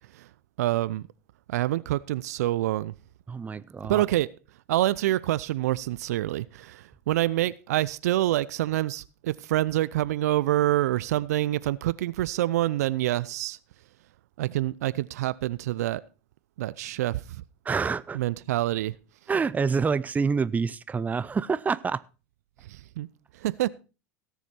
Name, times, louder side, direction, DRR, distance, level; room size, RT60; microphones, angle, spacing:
voice 1, 0.6-1.0 1.5-2.9 3.8-4.3 4.7-13.6 14.4-16.0 16.6-17.4 18.1-18.9 22.7-23.1 23.4-23.7, right 15 dB, 70° right, 0.5 m, -26 dB
voice 2, 3.3-4.0 17.7-18.2 19.3-22.0, right 5 dB, 20° right, 0.6 m, -27 dB
17.5 x 7.0 x 4.4 m
hypercardioid pair, 85°, 9 cm